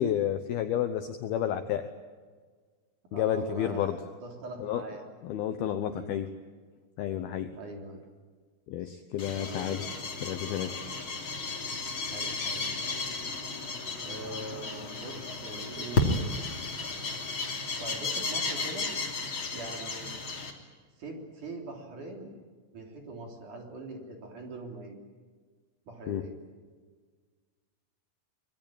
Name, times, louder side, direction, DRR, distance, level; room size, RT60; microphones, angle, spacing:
voice 1, 0.0-1.9 3.1-4.0 4.6-4.8 5.2-6.3 7.0-7.5 8.7-9.8 10.2-10.7 26.1-26.2, left 10 dB, 75° left, 8 dB, 2.4 m, -30 dB
voice 2, 3.1-5.1 5.9-6.1 7.6-8.0 8.8-9.0 9.4-9.8 12.1-12.7 14.0-16.0 17.5-18.9 19.5-20.1 21.0-22.3 22.7-25.0 25.9-26.4, right 2 dB, 45° right, 2 dB, 4.5 m, -42 dB
sound 1, 9.2-20.5, left 3 dB, 30° left, 2.9 m, -33 dB
25.0 x 22.0 x 8.9 m, 1.5 s
omnidirectional pair, 5.5 m